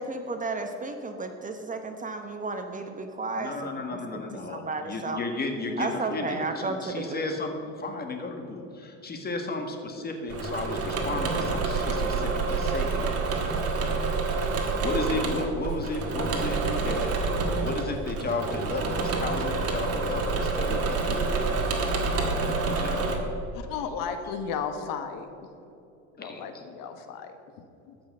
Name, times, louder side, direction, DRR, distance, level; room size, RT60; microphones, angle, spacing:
voice 1, 0.0-4.2 4.5-5.2 5.8-7.2, right 3 dB, 20° right, 6 dB, 0.9 m, -33 dB
voice 2, 3.3-13.0 14.8-17.1 17.6-21.2 22.6-23.1 26.2-26.4, left 3 dB, 25° left, 4 dB, 1.8 m, -33 dB
Engine / Mechanisms, 10.3-23.2, right 3 dB, 40° right, 2.0 m, -28 dB
voice 3, 23.5-25.5 26.1-27.9, left 6 dB, 60° left, 7 dB, 1.2 m, -35 dB
14.0 x 6.2 x 6.6 m, 2.8 s
supercardioid pair, 105°, 38 cm